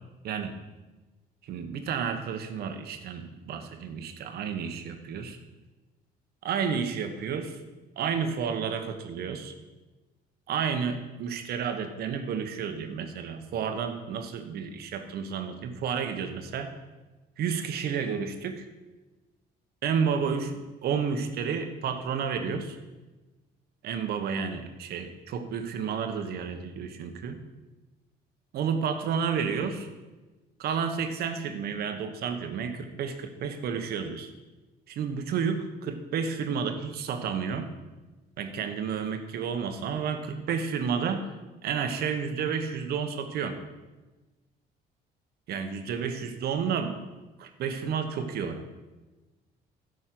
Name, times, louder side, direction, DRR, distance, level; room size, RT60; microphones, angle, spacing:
voice 1, 1.4-5.4 6.4-7.6 8.0-9.5 10.5-16.7 17.4-18.6 19.8-22.8 23.8-27.4 28.5-29.9 30.6-34.3 34.9-37.7 38.4-41.3 41.6-43.6 45.5-47.0 47.4-48.6, right 6 dB, 70° right, 7 dB, 1.2 m, -31 dB
11.0 x 5.5 x 7.7 m, 1.2 s
cardioid pair, 110°, 17 cm